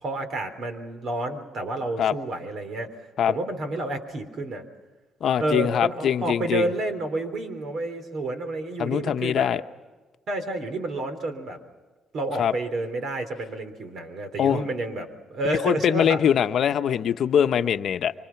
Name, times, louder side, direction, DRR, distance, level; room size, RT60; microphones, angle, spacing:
voice 1, 0.0-2.9 3.3-4.6 5.4-9.5 10.3-11.6 12.1-16.2, right 2 dB, 55° right, 3.5 m, -30 dB
voice 2, 5.2-6.7 8.8-9.6 12.4-12.5 14.4-14.6 15.6-18.1, left 9 dB, 60° left, 0.9 m, -22 dB
25.5 x 25.0 x 5.9 m
cardioid pair, 110°, 0 cm